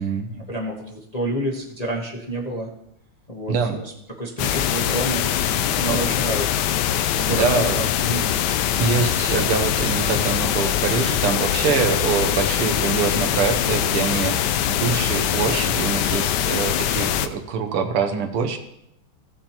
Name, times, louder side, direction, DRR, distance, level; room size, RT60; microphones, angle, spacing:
voice 1, 0.3-2.7 3.3-3.9 4.2-8.3, right 1 dB, 25° left, -2 dB, 0.8 m, -30 dB
voice 2, 3.5-3.8 5.8-6.1 7.3-7.8 8.8-18.6, right 5 dB, 90° right, 4 dB, 2.0 m, -24 dB
sound 1, 4.4-17.3, left 10 dB, 80° left, 0.9 m, -22 dB
16.0 x 7.4 x 2.9 m, 0.77 s
omnidirectional pair, 2.4 m